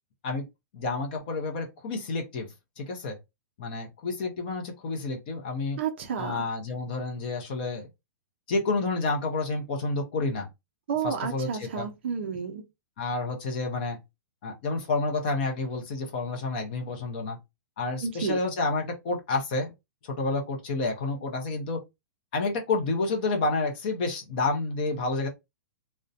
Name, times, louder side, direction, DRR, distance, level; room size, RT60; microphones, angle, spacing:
voice 1, 0.7-2.5 2.8-3.2 3.6-5.8 6.2-7.9 8.5-10.5 11.0-11.9 13.0-14.0 14.4-17.4 17.8-19.7 20.0-21.8 22.3-25.3, left 3 dB, 30° left, 0.5 m, -29 dB
voice 2, 5.8-6.5 10.9-12.6 18.0-18.4, right 7 dB, 35° right, 0.4 m, -31 dB
2.5 x 2.1 x 2.6 m
hypercardioid pair, 180°, 10 cm